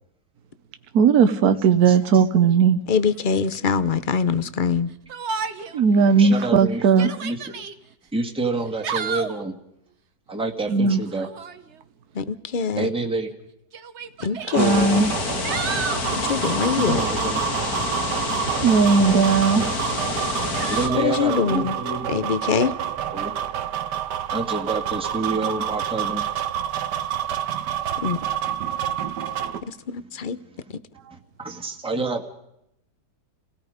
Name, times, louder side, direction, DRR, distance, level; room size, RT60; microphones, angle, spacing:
voice 1, 0.9-2.8 5.7-7.1 10.7-11.0 14.5-15.1 18.6-19.6, right 5 dB, 65° right, 1.4 m, -17 dB
voice 2, 1.9-2.2 6.1-6.9 7.2-7.4 8.1-9.5 10.3-11.3 12.7-13.3 16.7-17.4 20.2-22.1 23.1-23.4 24.3-26.2 30.5-30.6 31.1-32.2, right 3 dB, 5° right, 1.6 m, -28 dB
voice 3, 2.9-4.9 12.2-12.9 14.2-15.0 16.3-17.0 20.9-21.8 22.1-22.7 28.0-28.2 29.9-30.4, left 6 dB, 45° left, 0.7 m, -23 dB
Yell, 5.1-5.8 6.2-6.3 6.8-7.7 8.6-9.4 11.2-11.6 12.8-12.9 13.7-14.6 15.1-16.1 18.7-19.4 20.6-21.0, right 6 dB, 45° right, 1.2 m, -31 dB
sound 1, 14.5-29.6, right 10 dB, 90° right, 1.6 m, -28 dB
sound 2, 14.6-20.9, left 3 dB, 60° left, 2.3 m, -28 dB
29.0 x 17.5 x 5.1 m
omnidirectional pair, 1.8 m